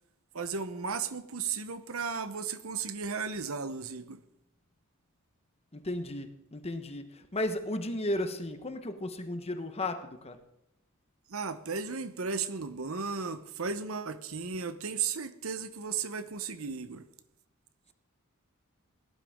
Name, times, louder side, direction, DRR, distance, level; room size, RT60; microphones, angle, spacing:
voice 1, 0.3-4.2 11.3-17.0, right 5 dB, 65° right, 12 dB, 0.9 m, -35 dB
voice 2, 5.7-10.4, left 1 dB, 30° left, 8 dB, 1.2 m, -34 dB
17.5 x 12.0 x 3.7 m, 0.86 s
head